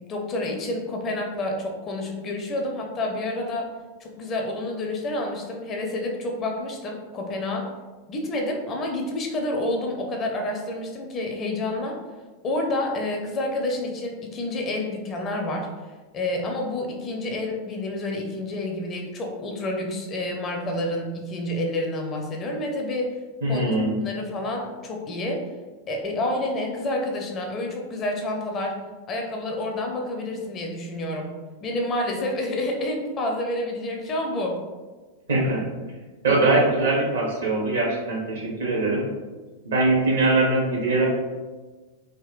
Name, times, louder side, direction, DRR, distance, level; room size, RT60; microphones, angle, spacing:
voice 1, 0.1-3.7 4.0-7.7 8.1-12.0 12.4-15.7 16.1-23.1 23.5-23.6 24.0-25.4 25.9-28.7 29.1-31.3 31.6-34.6, left 1 dB, 30° left, 1 dB, 0.5 m, -29 dB
voice 2, 23.4-23.9 35.3-35.6 36.2-39.0 39.6-41.1, right 2 dB, 65° right, -2 dB, 0.8 m, -22 dB
3.5 x 2.1 x 2.4 m, 1.3 s
figure-of-eight pair, 90°, 0 cm